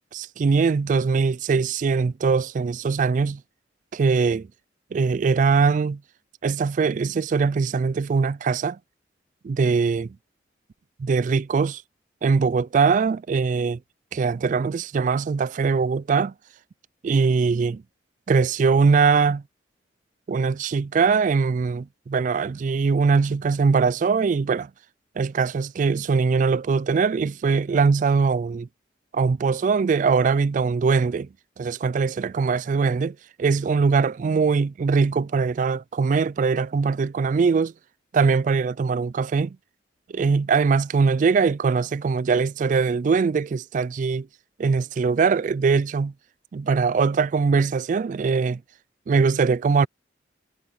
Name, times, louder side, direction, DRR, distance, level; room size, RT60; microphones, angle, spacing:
voice 1, 0.1-3.4 3.9-4.5 4.9-6.0 6.4-8.8 9.4-10.1 11.0-11.8 12.2-13.8 14.1-16.3 17.0-17.8 18.3-19.4 20.3-24.7 25.2-28.7 29.1-31.3 31.6-37.7 38.1-39.6 40.1-44.3 44.6-46.1 46.5-48.6 49.1-49.9, right 5 dB, 45° right, 0.3 m, -21 dB
head